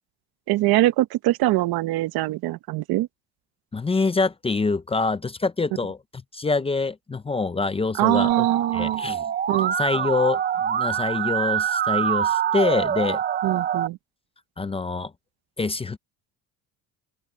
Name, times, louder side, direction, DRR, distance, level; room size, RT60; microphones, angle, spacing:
voice 1, 0.5-3.1 7.9-9.0 9.5-9.7 13.4-14.0, right 16 dB, 65° right, 0.9 m, -22 dB
voice 2, 3.7-6.0 6.3-8.5 8.7-9.3 9.8-13.2 14.6-15.1 15.6-16.0, left 3 dB, 15° left, 0.6 m, -25 dB
Musical instrument, 8.3-13.9, right 9 dB, 25° right, 0.6 m, -25 dB
open air
cardioid pair, 130°, 39 cm